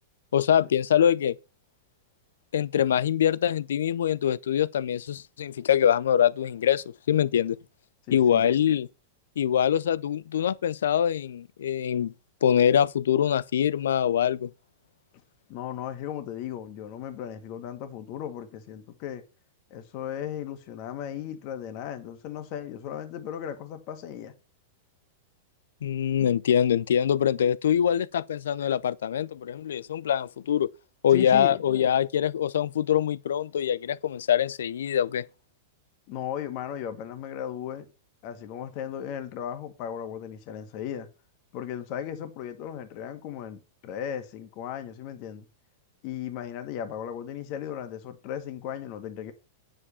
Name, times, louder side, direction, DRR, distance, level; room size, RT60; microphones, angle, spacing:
voice 1, 0.3-1.4 2.5-7.6 8.1-8.9 9.4-12.1 12.4-14.5 25.8-30.7 31.0-35.3, left 9 dB, 80° left, 0.5 m, -24 dB
voice 2, 8.1-8.4 15.5-19.2 19.7-24.3 31.1-31.6 36.1-37.9 38.2-41.1 41.5-45.4 46.0-49.3, left 9 dB, 50° left, 1.8 m, -36 dB
9.7 x 5.0 x 6.9 m
hypercardioid pair, 110°, 0 cm